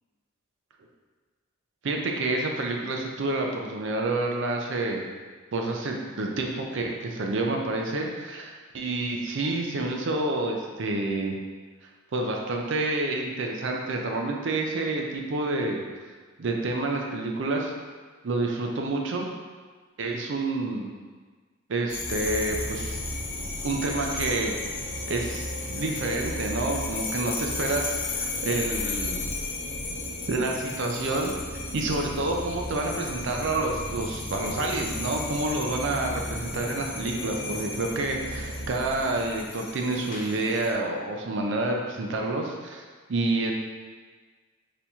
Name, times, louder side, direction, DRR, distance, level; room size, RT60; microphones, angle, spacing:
voice 1, 1.8-5.0 5.5-11.3 12.1-15.8 16.4-17.7 18.2-19.3 20.0-20.9 21.7-23.0 23.6-24.5 25.1-29.3 30.3-42.8 43.1-43.5, right 2 dB, 60° right, 1 dB, 0.5 m, -28 dB
sound 1, 21.9-40.7, left 4 dB, 40° left, 0.5 m, -36 dB
sound 2, 22.0-39.4, right 1 dB, 75° right, 1.1 m, -38 dB
4.3 x 2.8 x 3.5 m, 1.4 s
head